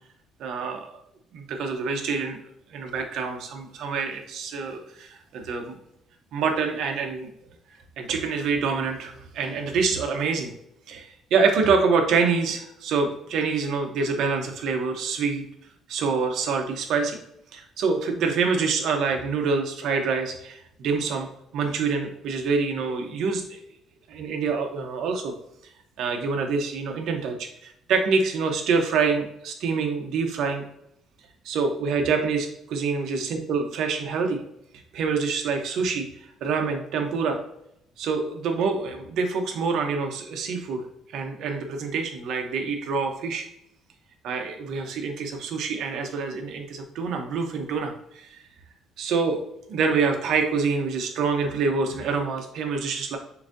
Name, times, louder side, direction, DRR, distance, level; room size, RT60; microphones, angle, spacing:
voice 1, 0.4-1.0 1.3-2.4 2.7-5.8 6.3-7.3 8.0-10.5 10.9-15.4 15.9-17.2 17.5-21.3 21.5-23.6 24.1-25.3 26.0-30.6 31.4-34.4 34.9-36.1 36.4-37.4 38.0-43.4 44.2-48.4 49.0-49.4 49.7-53.2, right 5 dB, 60° right, 4 dB, 0.8 m, -26 dB
7.0 x 2.6 x 2.6 m, 0.74 s
cardioid pair, 165°, 0 cm